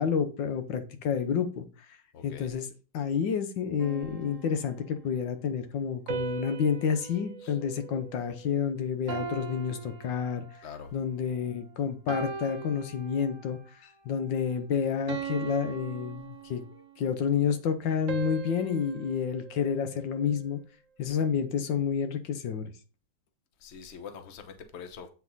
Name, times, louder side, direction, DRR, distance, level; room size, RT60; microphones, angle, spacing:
voice 1, 0.0-1.7 2.2-2.7 2.9-10.5 10.9-16.6 17.0-20.6 21.0-22.7, left 7 dB, 90° left, 1.7 m, -29 dB
voice 2, 2.1-2.5 7.4-7.6 10.6-10.9 23.6-25.1, left 6 dB, 45° left, 1.1 m, -44 dB
sound 1, 3.8-5.1 6.1-8.6 9.1-10.8 11.4-11.6 12.1-13.6 14.1-14.4 15.1-17.0 18.1-20.5, right 6 dB, 50° right, 1.2 m, -40 dB
8.1 x 4.8 x 4.0 m
omnidirectional pair, 1.9 m